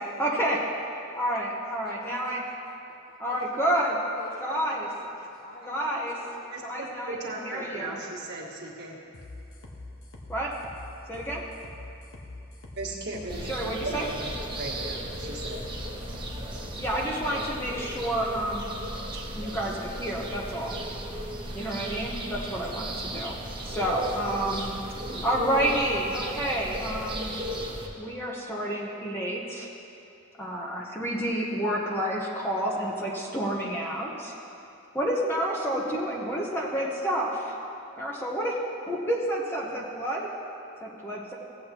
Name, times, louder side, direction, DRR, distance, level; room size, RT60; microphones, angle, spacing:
voice 1, 0.2-0.6 1.2-2.4 3.2-4.0 4.4-4.9 5.6-6.1 6.6-8.0 10.3-10.5 11.1-11.4 13.5-14.1 16.8-18.7 19.3-20.8 21.5-23.3 23.6-24.8 25.2-27.4 28.0-29.7 30.4-34.3 34.9-37.5 38.0-38.6 38.9-40.3 40.8-41.3, right 1 dB, 10° left, -4 dB, 0.9 m, -29 dB
voice 2, 1.8-2.3 2.9-3.0 3.3-5.8 6.1-6.6, left 1 dB, 45° left, -3 dB, 1.6 m, -47 dB
voice 3, 6.5-9.0 12.8-13.4 13.8-15.7, right 2 dB, 55° right, -4 dB, 1.6 m, -37 dB
sound 1, 9.1-16.9, left 2 dB, 85° left, 1.2 m, -44 dB
sound 2, 13.3-27.9, right 1 dB, 25° right, 1.1 m, -36 dB
16.5 x 8.4 x 2.9 m, 2.7 s
head